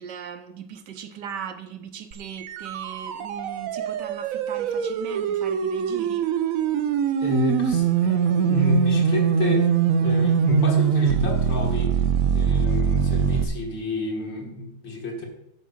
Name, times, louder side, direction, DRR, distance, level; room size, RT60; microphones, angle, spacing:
voice 1, 0.0-6.3, right 8 dB, 65° right, 9 dB, 1.3 m, -38 dB
sound 1, 2.1-13.4, right 7 dB, 90° right, 0.7 m, -23 dB
voice 2, 7.2-9.7 10.0-12.0 12.3-15.3, left 2 dB, 65° left, 0 dB, 2.5 m, -28 dB
9.5 x 4.9 x 7.3 m, 0.81 s
omnidirectional pair, 2.2 m